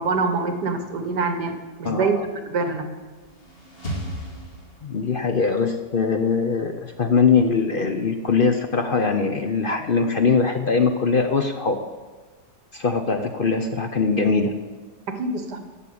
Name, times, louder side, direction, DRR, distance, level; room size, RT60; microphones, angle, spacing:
voice 1, 0.0-2.9 15.1-15.6, right 4 dB, 80° right, 7 dB, 1.9 m, -25 dB
voice 2, 1.8-2.2 4.8-11.8 12.7-14.5, left 5 dB, 55° left, 6 dB, 0.6 m, -21 dB
sound 1, 3.0-5.3, equal, 35° left, 2.7 m, -35 dB
11.0 x 7.4 x 8.5 m, 1.3 s
omnidirectional pair, 1.8 m